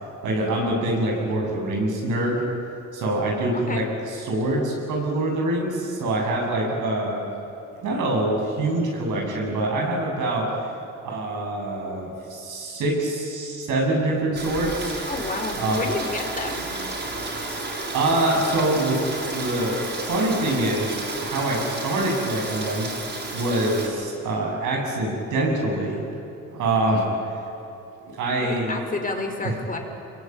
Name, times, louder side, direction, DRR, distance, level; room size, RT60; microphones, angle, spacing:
voice 1, 0.2-2.4 2.9-7.3 7.8-10.5 11.0-15.0 15.6-15.9 17.9-19.1 19.3-19.8 20.1-20.9 21.2-22.9 23.3-26.0 26.5-27.3 28.1-28.8 29.4-29.5, right 1 dB, 85° right, 0 dB, 7.7 m, -25 dB
voice 2, 3.5-3.9 15.1-16.7 28.4-29.8, left 2 dB, 25° left, 3 dB, 4.5 m, -30 dB
Rain, 14.4-23.9, right 2 dB, 35° right, 7.1 m, -32 dB
26.0 x 22.0 x 9.4 m, 2.8 s
cardioid pair, 90°, 30 cm